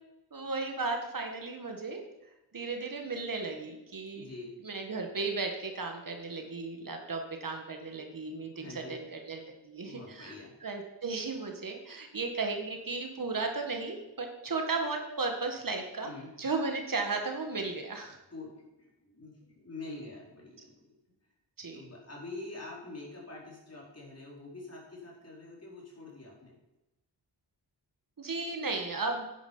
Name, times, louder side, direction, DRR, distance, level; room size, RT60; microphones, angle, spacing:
voice 1, 0.3-2.0 2.5-4.3 4.6-10.3 10.6-16.1 16.4-18.2 21.6-21.8 28.2-29.3, right 3 dB, 50° right, 3 dB, 1.8 m, -35 dB
voice 2, 4.1-4.5 8.6-9.0 9.8-10.5 16.0-16.3 18.3-18.5 18.8-20.7 21.2-21.3 21.7-26.6, left 2 dB, 35° left, -4 dB, 4.9 m, -45 dB
10.5 x 10.0 x 5.6 m, 0.99 s
wide cardioid pair, 105°, 42 cm